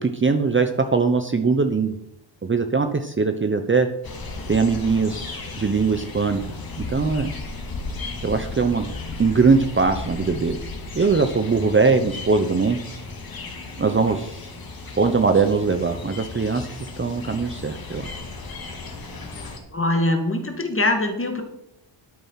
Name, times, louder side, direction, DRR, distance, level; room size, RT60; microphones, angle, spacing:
voice 1, 0.0-2.0 2.4-3.9 4.5-6.4 6.8-7.3 8.2-8.9 9.2-10.6 10.9-12.8 13.8-14.5 15.0-18.1, right 4 dB, 25° right, 7 dB, 0.9 m, -21 dB
sound 1, 4.0-19.6, left 3 dB, 45° left, 2.7 m, -35 dB
voice 2, 19.7-21.4, left 1 dB, 25° left, 5 dB, 2.2 m, -22 dB
12.5 x 8.9 x 5.8 m, 0.80 s
wide cardioid pair, 135°, 50 cm